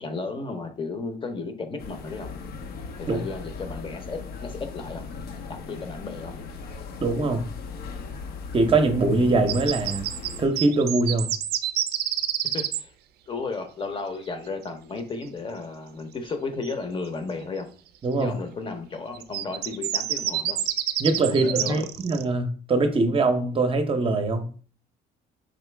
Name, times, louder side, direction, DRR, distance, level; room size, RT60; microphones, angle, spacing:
voice 1, 0.0-2.3 3.0-5.0 5.5-6.4 12.5-12.9 13.3-17.7 18.2-20.6 21.3-21.8, left 3 dB, 30° left, 0.8 m, -34 dB
sound 1, 1.8-10.5, left 4 dB, 65° left, 0.7 m, -38 dB
voice 2, 7.0-7.4 8.5-10.1 10.4-11.3 18.0-18.3 21.0-24.6, right 3 dB, 30° right, 0.7 m, -22 dB
sound 2, 9.5-12.8 16.6-16.7 19.1-22.2, right 11 dB, 70° right, 0.4 m, -28 dB
5.1 x 2.8 x 3.3 m
cardioid pair, 110°, 17 cm